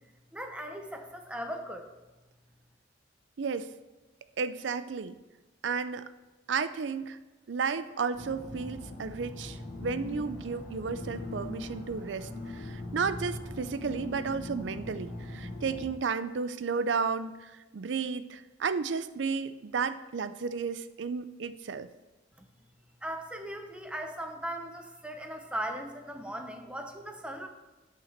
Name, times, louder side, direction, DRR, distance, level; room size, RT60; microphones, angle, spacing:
voice 1, 0.3-1.9 22.4-22.5 23.0-27.5, right 1 dB, 5° right, 4 dB, 0.9 m, -38 dB
voice 2, 3.4-3.7 4.4-5.2 5.6-6.0 6.5-7.2 7.5-21.9, right 5 dB, 75° right, 12 dB, 0.5 m, -33 dB
sound 1, 8.1-15.8, left 2 dB, 80° left, 3.0 m, -40 dB
9.2 x 5.9 x 6.6 m, 1.1 s
head